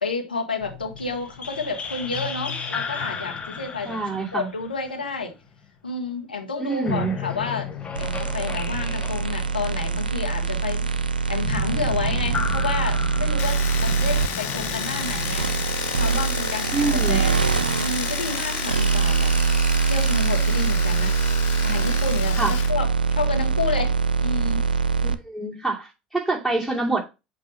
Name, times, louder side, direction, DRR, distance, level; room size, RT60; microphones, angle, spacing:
voice 1, 0.0-4.0 4.3-5.3 5.8-7.7 8.0-10.9 11.3-15.5 16.0-17.3 17.8-21.1 21.6-23.9 24.2-24.7, left 4 dB, 85° left, 1.2 m, -30 dB
sound 1, 0.6-5.6 6.7-18.1, left 5 dB, 25° left, 1.0 m, -35 dB
voice 2, 3.8-4.5 6.6-7.1 16.7-17.2 22.3-22.5 25.0-27.0, right 3 dB, ahead, 2.4 m, -26 dB
sound 2, 7.9-25.1, right 5 dB, 85° right, 0.4 m, -23 dB
Domestic sounds home sounds, 13.4-22.7 23.0-23.8, left 15 dB, 50° left, 0.4 m, -33 dB
7.7 x 2.6 x 5.4 m
figure-of-eight pair, 75°, 5 cm